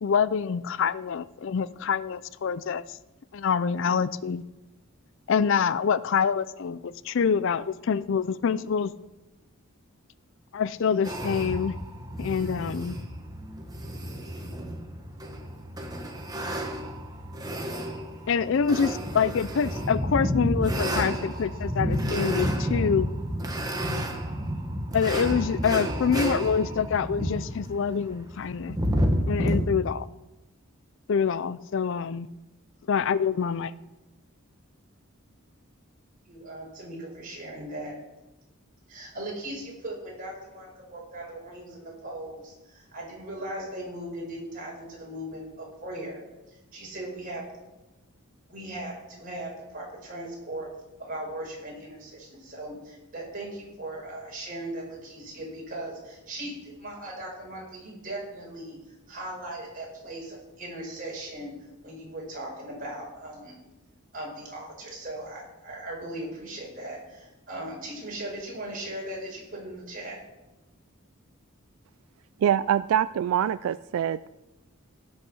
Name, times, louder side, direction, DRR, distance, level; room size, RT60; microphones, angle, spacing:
voice 1, 0.0-3.0 3.3-4.4 5.3-8.9 10.5-11.7 12.2-13.0 18.3-23.1 24.9-28.8 29.3-30.1 31.1-32.3 32.9-33.7, left 6 dB, 65° left, 17 dB, 0.4 m, -26 dB
sound 1, 11.0-29.6, equal, 20° right, 1.4 m, -30 dB
voice 2, 36.3-38.0 38.9-46.2 46.5-47.4 48.5-50.7 51.0-58.8 59.1-61.5 61.8-63.6 64.1-70.2, right 1 dB, 45° right, -2 dB, 5.3 m, -38 dB
voice 3, 72.4-74.3, right 9 dB, 85° right, 16 dB, 0.3 m, -24 dB
17.0 x 6.4 x 6.2 m, 1.0 s
head